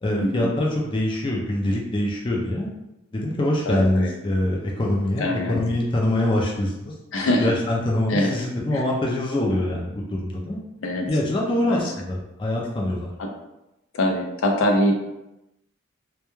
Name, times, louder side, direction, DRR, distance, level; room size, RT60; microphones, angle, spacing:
voice 1, 0.0-2.7 3.1-7.0 7.4-10.6 11.1-13.1, left 1 dB, 25° left, -2 dB, 0.3 m, -24 dB
voice 2, 3.7-4.1 5.2-5.6 7.1-7.5 8.1-8.3 8.7-8.8 10.8-11.1 11.6-11.8 13.2-13.3 13.9-14.9, left 1 dB, 90° left, 2 dB, 0.5 m, -23 dB
2.2 x 2.2 x 3.0 m, 0.93 s
head